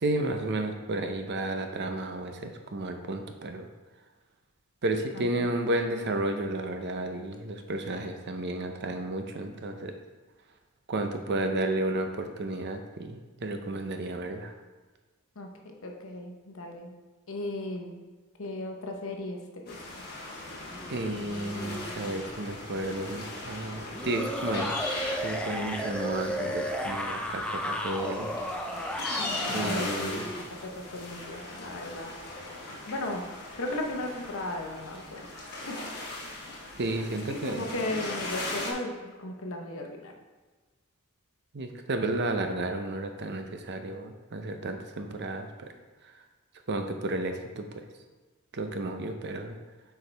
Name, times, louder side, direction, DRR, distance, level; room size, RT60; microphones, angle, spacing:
voice 1, 0.0-3.7 4.8-9.9 10.9-14.5 20.9-24.7 25.2-28.3 29.5-30.2 36.8-37.7 41.5-45.7 46.0-46.1 46.7-47.8 48.5-49.6, right 2 dB, 50° right, 5 dB, 0.6 m, -32 dB
voice 2, 5.1-5.5 11.3-11.5 15.4-16.9 17.3-18.0 18.4-20.0 29.2-30.2 30.5-32.2 32.9-33.2 33.6-35.3 35.7-35.9 37.3-40.1, left 1 dB, 65° left, 2 dB, 0.9 m, -36 dB
sound 1, 19.7-38.7, left 2 dB, 45° left, 1.4 m, -39 dB
sound 2, 20.7-22.4 23.9-30.5, equal, 5° left, 0.5 m, -34 dB
7.9 x 4.7 x 3.4 m, 1.3 s
head